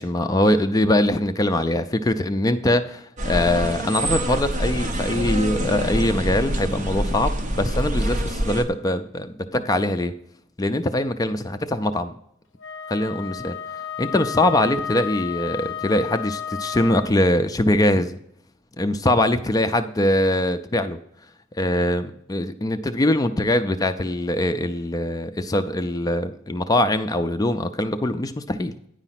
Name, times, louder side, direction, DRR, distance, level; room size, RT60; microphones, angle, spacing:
voice 1, 0.0-10.1 10.6-12.1 12.9-13.6 14.0-18.2 18.8-21.0 21.6-28.7, left 1 dB, 15° left, 9 dB, 0.4 m, -22 dB
sound 1, 3.2-8.6, right 1 dB, 35° right, 0.8 m, -26 dB
Wind instrument woodwind instrument, 12.6-17.1, left 8 dB, 60° left, 0.6 m, -32 dB
9.8 x 5.0 x 5.7 m, 0.73 s
head